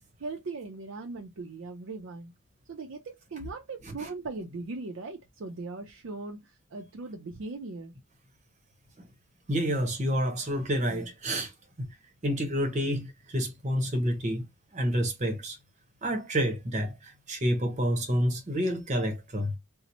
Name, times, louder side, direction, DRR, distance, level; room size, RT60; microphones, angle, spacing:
voice 1, 0.0-2.3 2.7-7.9, right 3 dB, 60° right, 0.4 m, -39 dB
voice 2, 9.5-11.5 11.8-11.9 12.2-14.4 14.7-15.6 16.0-19.5, equal, 35° right, 0.8 m, -28 dB
2.8 x 2.0 x 4.0 m
head